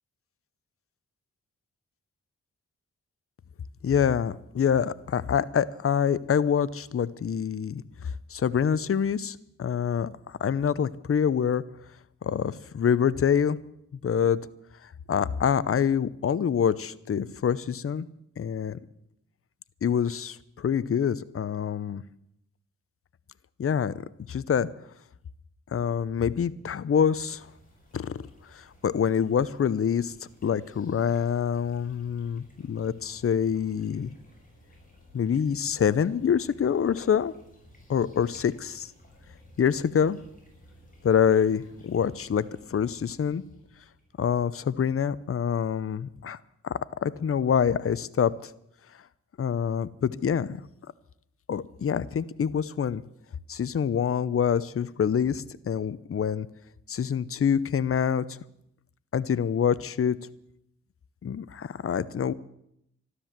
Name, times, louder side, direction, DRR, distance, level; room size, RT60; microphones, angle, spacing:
voice 1, 3.8-7.8 8.3-11.6 12.2-13.6 14.0-14.4 15.1-18.1 18.4-18.8 19.8-22.0 23.6-23.9 24.3-24.7 25.7-27.5 27.9-28.2 28.5-30.1 30.4-34.1 35.1-37.3 37.9-38.9 39.6-40.2 41.0-43.4 44.2-46.4 46.6-48.5 49.4-50.6 51.5-53.0 53.5-56.5 56.9-58.4 59.1-60.2 61.2-62.3, left 7 dB, 50° left, 17 dB, 0.7 m, -26 dB
sound 1, 27.3-45.5, left 1 dB, 25° left, 6.8 m, -56 dB
13.0 x 12.5 x 7.4 m, 0.75 s
cardioid pair, 65°, 30 cm